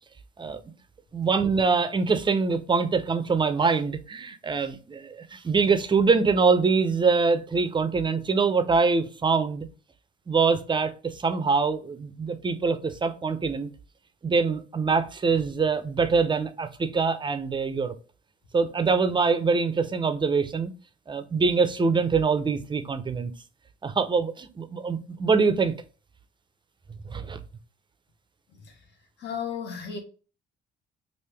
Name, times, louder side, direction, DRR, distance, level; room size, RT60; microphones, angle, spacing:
voice 1, 1.1-9.7 10.3-13.7 14.2-17.9 18.5-20.7 21.1-23.3 23.8-25.7 27.1-27.4, right 4 dB, 25° right, 0.5 m, -24 dB
voice 2, 29.2-30.0, left 7 dB, 60° left, 1.1 m, -33 dB
3.2 x 2.6 x 3.3 m
cardioid pair, 90°, 20 cm